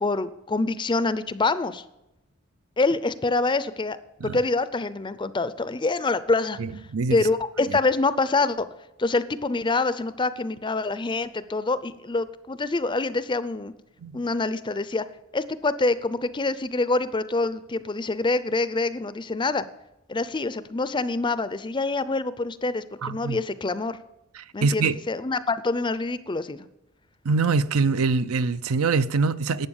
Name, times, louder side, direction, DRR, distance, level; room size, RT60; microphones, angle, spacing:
voice 1, 0.0-1.8 2.8-4.0 4.2-6.6 7.1-8.7 9.0-13.7 14.1-15.0 15.3-19.6 20.1-24.0 24.5-26.7, left 3 dB, 20° left, 0.5 m, -26 dB
voice 2, 6.6-7.3 14.0-14.2 23.0-23.4 24.3-25.0 27.2-29.7, right 4 dB, 70° right, 0.6 m, -24 dB
12.0 x 8.5 x 7.1 m
head